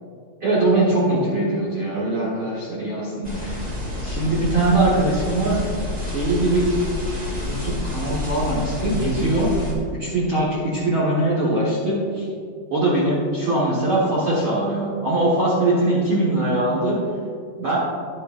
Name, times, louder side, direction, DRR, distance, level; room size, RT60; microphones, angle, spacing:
voice 1, 0.4-3.6 4.0-5.6 6.1-6.7 7.3-9.5 10.0-12.2 12.7-17.0 17.6-17.8, right 2 dB, 55° right, -6 dB, 1.5 m, -21 dB
sound 1, 3.2-9.7, left 2 dB, 30° right, 0.8 m, -29 dB
10.5 x 9.5 x 2.5 m, 2.1 s
omnidirectional pair, 4.3 m